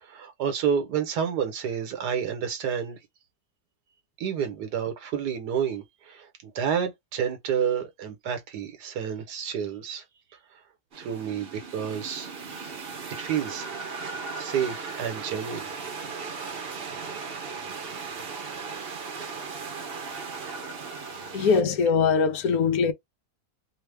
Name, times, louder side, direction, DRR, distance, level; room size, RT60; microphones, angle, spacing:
voice 1, 0.0-3.0 4.2-10.0 11.0-12.3 13.2-13.7 14.4-15.7, right 8 dB, 85° right, 1.5 m, -29 dB
sound 1, 10.9-21.6, right 4 dB, 50° right, 0.7 m, -37 dB
voice 2, 21.3-22.9, left 5 dB, 75° left, 1.0 m, -22 dB
3.3 x 2.2 x 3.3 m
omnidirectional pair, 1.7 m